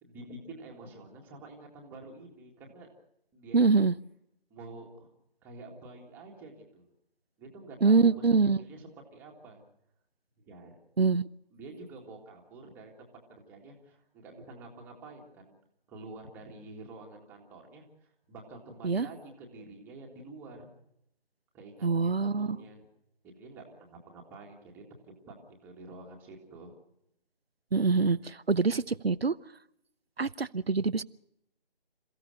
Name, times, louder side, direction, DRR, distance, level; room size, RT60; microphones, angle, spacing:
voice 1, 0.0-2.9 3.3-3.9 4.5-5.1 5.4-6.9 7.4-8.3 8.6-9.6 10.5-10.8 11.5-15.5 15.9-20.7 21.5-22.9 23.2-25.4 25.6-26.7, right 2 dB, 5° right, 0 dB, 1.9 m, -48 dB
voice 2, 3.5-3.9 7.8-8.6 11.0-11.3 18.8-19.1 21.8-22.6 27.7-29.4 30.2-31.0, right 4 dB, 85° right, 14 dB, 0.8 m, -24 dB
28.0 x 15.5 x 6.4 m, 0.78 s
figure-of-eight pair, 155°, 30 cm